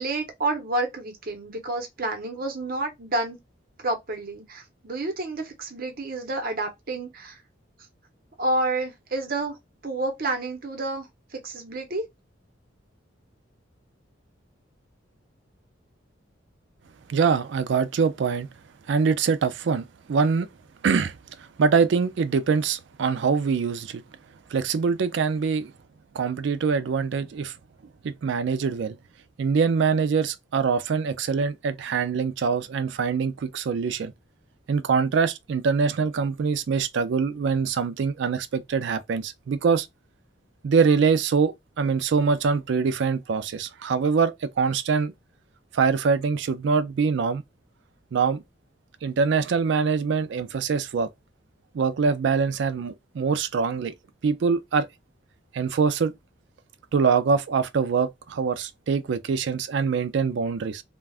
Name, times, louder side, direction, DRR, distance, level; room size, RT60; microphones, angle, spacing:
voice 1, 0.0-3.4 3.8-7.4 8.4-9.6 9.8-11.0 11.3-12.1, right 2 dB, 50° right, 0.9 m, -29 dB
voice 2, 17.1-18.5 18.9-20.5 20.8-24.0 24.5-25.7 26.1-27.5 28.0-29.0 29.4-34.1 34.7-39.9 40.6-45.1 45.7-47.4 48.1-48.4 49.0-51.1 51.7-53.9 54.2-54.9 55.5-56.1 56.9-60.8, right 5 dB, 65° right, 0.4 m, -24 dB
3.3 x 2.3 x 2.4 m
head